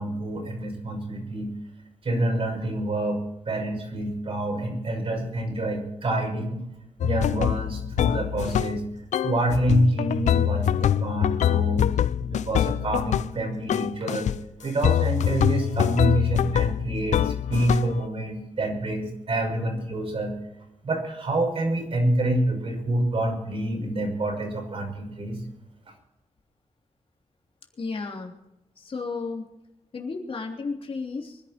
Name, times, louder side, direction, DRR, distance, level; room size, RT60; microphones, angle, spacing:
voice 1, 0.0-1.5 2.0-3.2 3.5-6.6 7.0-8.8 9.2-11.8 12.2-14.3 14.6-20.3 20.8-25.4, right 1 dB, 50° right, 1 dB, 5.9 m, -27 dB
sound 1, 7.0-8.9 9.1-13.4 13.7-14.4 14.8-18.0, left 10 dB, 85° left, 0.4 m, -24 dB
voice 2, 27.8-28.3 28.8-29.5 29.9-31.4, left 4 dB, 50° left, 1 dB, 3.2 m, -33 dB
24.5 x 11.0 x 4.5 m, 0.89 s
wide cardioid pair, 115°, 12 cm